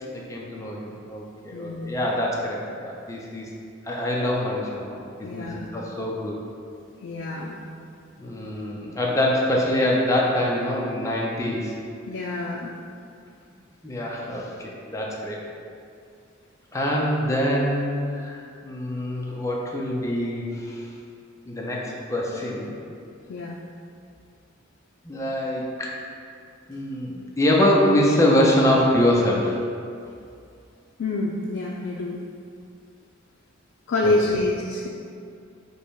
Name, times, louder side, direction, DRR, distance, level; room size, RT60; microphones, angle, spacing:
voice 1, 0.1-3.5 3.9-6.4 8.2-11.8 13.8-15.4 16.7-17.9 18.1-20.8 21.5-22.7 25.0-26.0 26.7-29.6 34.0-34.1, left 1 dB, 15° left, -3 dB, 0.5 m, -24 dB
voice 2, 1.5-2.0 5.2-5.7 7.0-7.6 12.1-12.7 23.3-23.6 31.0-32.2 33.9-34.9, left 2 dB, 75° left, -3 dB, 0.4 m, -27 dB
5.3 x 2.2 x 4.6 m, 2.4 s
head